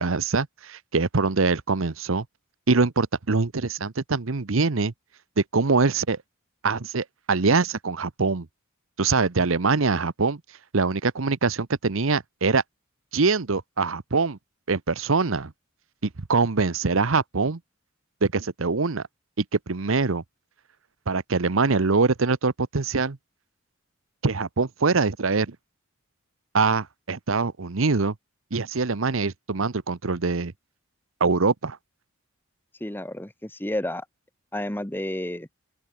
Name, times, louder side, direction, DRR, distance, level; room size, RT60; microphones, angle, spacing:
voice 1, 0.0-2.2 2.7-4.9 5.4-6.2 6.6-8.5 9.0-10.4 10.7-12.6 13.1-14.4 14.7-15.5 16.0-17.6 18.2-19.1 19.4-20.2 21.1-23.2 24.2-25.6 26.5-28.1 28.5-30.5 31.2-31.8, right 4 dB, 70° right, 0.9 m, -23 dB
voice 2, 32.8-34.0 34.5-35.5, left 1 dB, 10° left, 1.2 m, -31 dB
open air
head